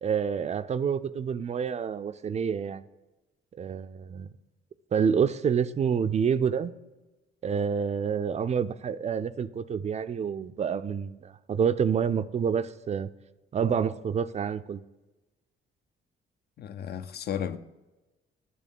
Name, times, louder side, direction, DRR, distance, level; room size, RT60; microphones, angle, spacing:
voice 1, 0.0-2.8 3.6-4.3 4.9-6.7 7.4-13.1 13.5-14.8, right 7 dB, 35° right, 0.4 m, -28 dB
voice 2, 16.6-17.6, left 9 dB, 55° left, 0.5 m, -33 dB
8.5 x 3.1 x 5.3 m
cardioid pair, 90°, 20 cm